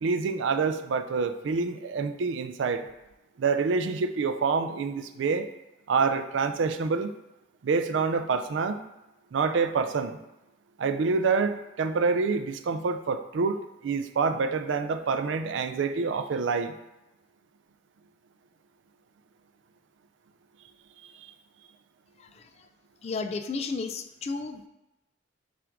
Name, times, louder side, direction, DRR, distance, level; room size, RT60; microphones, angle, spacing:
voice 1, 0.0-2.9 3.4-5.5 5.9-7.1 7.6-8.8 9.3-10.2 10.8-16.7, right 4 dB, 80° right, 9 dB, 0.4 m, -27 dB
voice 2, 23.0-24.6, left 4 dB, 35° left, 8 dB, 0.3 m, -33 dB
5.8 x 2.5 x 3.5 m, 0.96 s
head